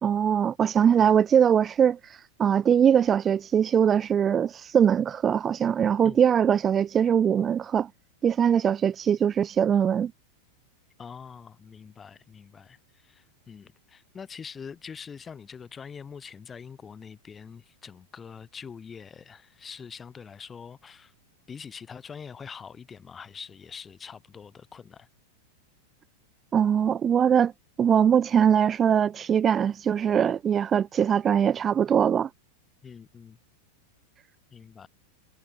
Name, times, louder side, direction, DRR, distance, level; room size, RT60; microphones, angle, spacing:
voice 1, 0.0-7.9 8.2-10.1 26.5-27.5 27.8-32.3, right 8 dB, 25° right, 0.4 m, -22 dB
voice 2, 11.0-21.1 21.5-25.1 32.8-33.4 34.5-34.9, left 6 dB, 20° left, 6.5 m, -44 dB
figure-of-eight pair, 90°, 0 cm